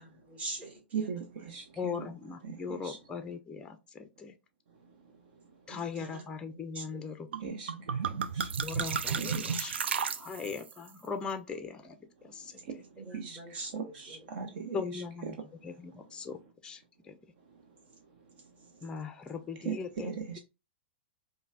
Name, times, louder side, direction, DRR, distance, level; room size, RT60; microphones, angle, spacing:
voice 1, 0.0-1.5 5.7-6.2 6.5-7.0 7.5-7.7 12.7-14.2 14.7-14.8 18.4-18.7, right 2 dB, 20° right, 1.8 m, -45 dB
voice 2, 0.9-1.9 2.4-3.0 7.4-7.7 8.1-8.5 9.2-9.6 13.1-13.4 13.7-15.0 19.6-20.4, right 6 dB, 50° right, 0.8 m, -38 dB
voice 3, 1.8-4.3 5.7-7.3 8.6-12.6 14.7-15.4 15.6-17.2 18.8-20.4, left 5 dB, 15° left, 0.5 m, -39 dB
sound 1, 7.3-7.4 7.7-10.7, right 6 dB, 65° right, 0.4 m, -33 dB
5.1 x 2.2 x 2.4 m
figure-of-eight pair, 105°, 6 cm